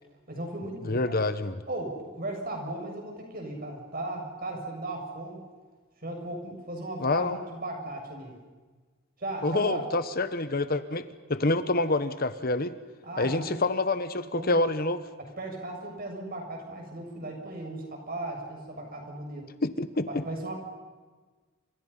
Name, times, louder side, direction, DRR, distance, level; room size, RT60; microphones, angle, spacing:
voice 1, 0.3-1.2 1.7-5.4 6.0-8.4 9.2-9.8 13.0-13.6 14.3-14.6 15.2-19.5 20.1-20.5, right 1 dB, 45° right, 2 dB, 6.9 m, -36 dB
voice 2, 0.8-1.6 7.0-7.4 9.4-12.7 13.2-15.0 19.6-20.2, left 2 dB, 45° left, 11 dB, 1.2 m, -27 dB
29.5 x 27.0 x 5.7 m, 1.4 s
head